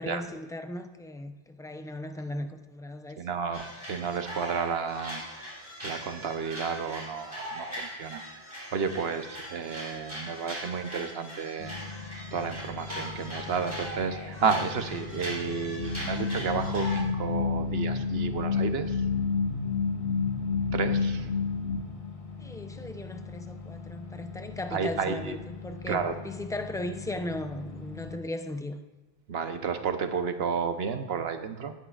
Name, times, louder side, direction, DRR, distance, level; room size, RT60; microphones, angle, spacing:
voice 1, 0.0-3.2 22.4-28.8, left 1 dB, 5° left, 0.4 m, -37 dB
voice 2, 3.2-5.2 5.8-11.8 12.3-19.0 20.7-21.3 24.7-25.4 25.9-26.1 29.3-31.7, right 6 dB, 75° right, 1.1 m, -32 dB
sound 1, 3.5-17.0, equal, 15° right, 3.9 m, -40 dB
sound 2, 11.6-28.2, left 4 dB, 35° left, 1.5 m, -43 dB
sound 3, 15.8-21.8, left 5 dB, 85° left, 2.2 m, -29 dB
18.0 x 8.6 x 2.4 m
omnidirectional pair, 1.0 m